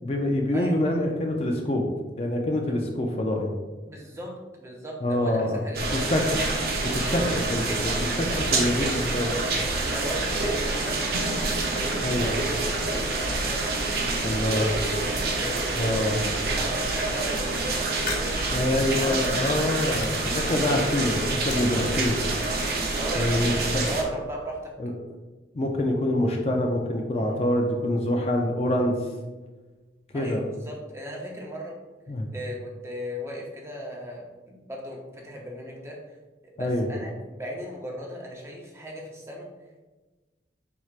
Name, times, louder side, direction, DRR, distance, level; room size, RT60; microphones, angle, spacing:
voice 1, 0.0-1.9 2.2-3.5 5.0-6.4 6.8-9.3 12.0-12.4 14.2-14.7 15.8-16.3 18.5-22.2 23.2-23.8 24.8-24.9 25.5-29.1 30.1-30.4 32.1-32.3 36.6-36.9, left 1 dB, 35° left, 1 dB, 0.4 m, -26 dB
voice 2, 3.9-4.3 4.6-6.0 7.1-7.3 8.3-8.6 9.9-14.8 15.3-18.7 19.0-19.3 21.7-22.0 23.0-23.5 23.8-24.7 27.2-27.3 30.1-31.7 32.3-35.9 36.4-39.5, equal, 15° right, -1 dB, 0.6 m, -37 dB
sound 1, 5.7-24.0, right 2 dB, 55° right, 0.6 m, -27 dB
sound 2, 18.0-19.5 19.9-20.9 21.3-23.0, left 3 dB, 50° left, 0.9 m, -39 dB
4.5 x 4.4 x 2.4 m, 1.2 s
head